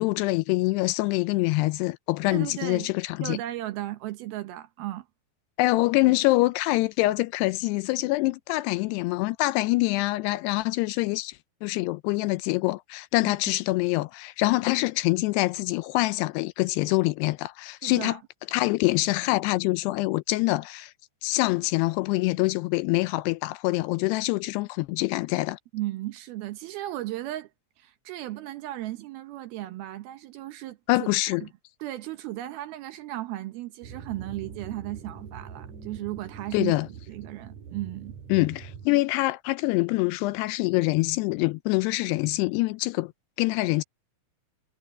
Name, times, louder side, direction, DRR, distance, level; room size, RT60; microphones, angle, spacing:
voice 1, 0.0-3.4 5.6-18.2 18.5-20.9 21.2-25.6 30.9-31.4 36.5-36.9 38.3-43.1 43.4-43.8, left 20 dB, 85° left, 2.5 m, -25 dB
voice 2, 2.3-2.9 3.2-5.1 13.2-13.3 17.8-18.2 25.7-27.5 27.8-31.1 31.4-31.5 31.8-36.7 37.1-38.2, right 15 dB, 75° right, 2.5 m, -35 dB
sound 1, 33.8-38.9, right 6 dB, 55° right, 2.5 m, -43 dB
omnidirectional pair, 5.0 m